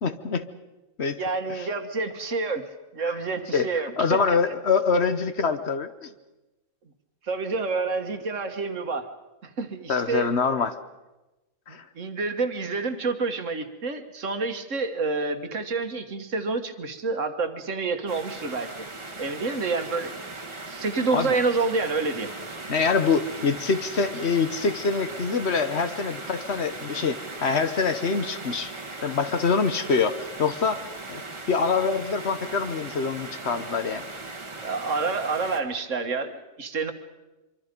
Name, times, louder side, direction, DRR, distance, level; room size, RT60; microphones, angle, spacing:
voice 1, 0.0-0.4 1.0-1.2 1.6-1.7 3.0-3.2 3.5-3.7 4.0-6.1 9.9-10.8 11.7-11.8 21.1-21.3 22.7-28.7 29.0-31.2 31.5-34.0, left 5 dB, 55° left, 11 dB, 1.3 m, -25 dB
voice 2, 1.2-4.4 7.2-9.1 9.4-10.3 11.7-18.9 19.2-20.1 20.7-22.3 34.6-36.9, right 4 dB, 65° right, 8 dB, 1.8 m, -28 dB
sound 1, 18.1-35.6, right 2 dB, 20° right, 1.8 m, -38 dB
25.0 x 24.5 x 5.3 m, 1.1 s
omnidirectional pair, 1.4 m